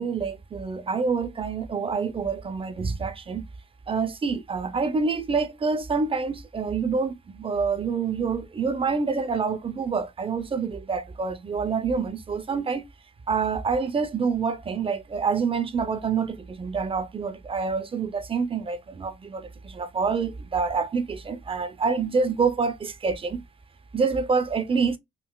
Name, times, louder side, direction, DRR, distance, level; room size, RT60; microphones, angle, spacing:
voice 1, 0.0-3.5 3.9-12.9 13.3-23.4 23.9-25.0, right 5 dB, 25° right, 0.4 m, -27 dB
3.7 x 2.4 x 2.2 m
cardioid pair, 90°, 20 cm